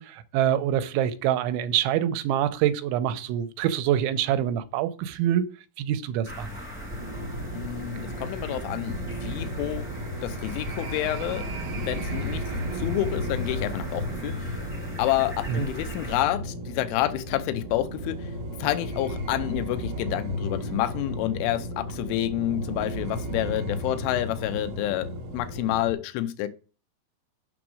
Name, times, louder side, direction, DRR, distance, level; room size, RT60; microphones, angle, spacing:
voice 1, 0.0-5.4 5.8-6.5 15.5-15.6, right 11 dB, 90° right, 3.0 m, -25 dB
sound 1, 6.2-16.2, equal, 10° left, 0.6 m, -39 dB
sound 2, 6.9-25.9, equal, 70° right, 1.6 m, -34 dB
voice 2, 7.5-9.9 10.2-11.4 11.8-14.6 15.0-18.3 18.6-25.1 25.3-26.5, left 14 dB, 90° left, 3.2 m, -29 dB
7.6 x 6.1 x 6.2 m
omnidirectional pair, 5.3 m